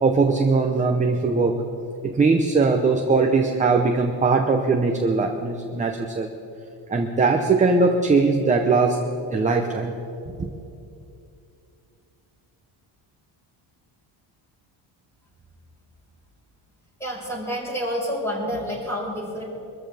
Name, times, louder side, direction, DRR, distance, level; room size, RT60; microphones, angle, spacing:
voice 1, 0.0-1.6 2.0-6.3 6.9-9.0 9.3-9.9 10.3-10.5, right 4 dB, 15° right, 3 dB, 0.7 m, -20 dB
voice 2, 17.0-19.4, equal, 5° left, -5 dB, 4.8 m, -28 dB
24.5 x 14.0 x 3.4 m, 2.6 s
cardioid pair, 160°, 48 cm